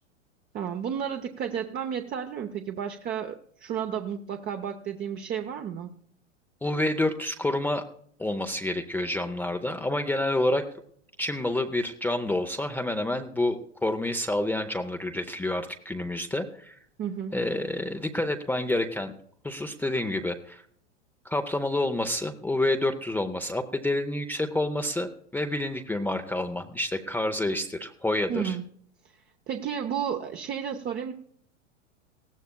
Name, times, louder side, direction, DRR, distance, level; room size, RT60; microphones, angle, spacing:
voice 1, 0.5-5.9 17.0-17.4 28.3-28.6 29.5-31.1, right 8 dB, 25° right, 4 dB, 0.8 m, -32 dB
voice 2, 6.6-7.8 8.2-10.7 11.2-16.8 17.3-19.1 19.4-20.6 21.2-28.6, left 1 dB, 5° left, 5 dB, 0.5 m, -28 dB
19.0 x 14.5 x 2.2 m, 0.63 s
hypercardioid pair, 105°, 36 cm